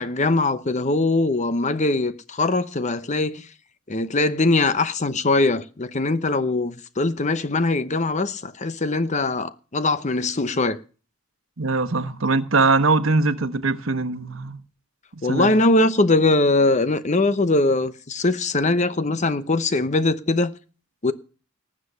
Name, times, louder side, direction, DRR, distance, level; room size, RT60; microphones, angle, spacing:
voice 1, 0.0-3.5 3.9-10.8 15.2-20.5 21.0-21.1, left 2 dB, 35° left, 0.9 m, -21 dB
voice 2, 11.6-14.6 15.3-15.5, right 3 dB, 75° right, 1.2 m, -21 dB
19.0 x 7.6 x 6.7 m
head